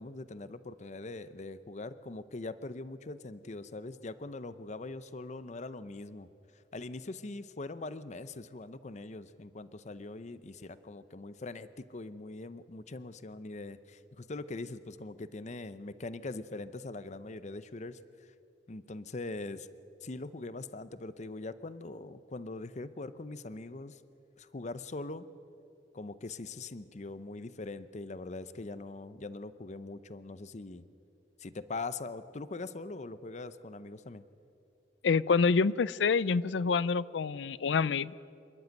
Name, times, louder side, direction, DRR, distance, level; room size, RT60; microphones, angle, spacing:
voice 1, 0.0-6.3 6.7-18.0 18.7-19.7 20.0-24.0 24.4-25.2 25.9-30.8 31.4-34.2, left 2 dB, 40° left, 14 dB, 0.7 m, -42 dB
voice 2, 35.0-38.1, left 5 dB, 90° left, 19 dB, 0.5 m, -27 dB
27.0 x 11.0 x 9.1 m, 2.7 s
head